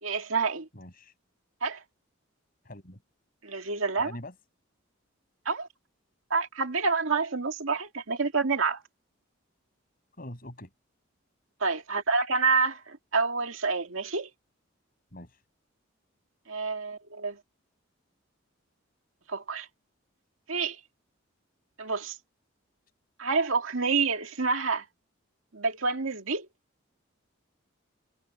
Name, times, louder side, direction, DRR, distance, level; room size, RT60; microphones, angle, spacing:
voice 1, 0.0-0.7 1.6-1.8 3.4-4.1 5.5-5.7 6.3-8.8 11.6-14.3 16.5-17.4 19.3-19.7 20.5-20.8 21.8-22.2 23.2-24.8 25.5-26.5, right 4 dB, 80° right, 2.1 m, -28 dB
voice 2, 0.7-1.1 2.6-3.0 3.9-4.3 10.2-10.7 15.1-15.4, left 1 dB, 45° left, 6.8 m, -43 dB
head